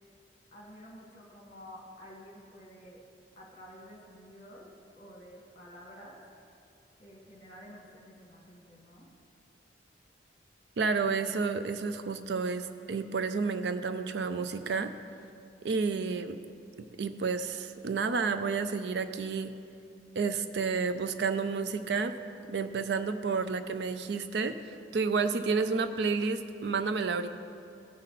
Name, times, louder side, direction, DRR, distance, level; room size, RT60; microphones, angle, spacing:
voice 1, 0.5-3.0 3.4-6.2 7.0-9.1, equal, 40° left, -3 dB, 2.1 m, -50 dB
voice 2, 10.8-14.9 15.6-16.4 17.0-19.5 20.2-22.1 22.5-27.3, right 4 dB, 65° right, 10 dB, 0.4 m, -30 dB
16.0 x 5.4 x 4.1 m, 2.5 s
head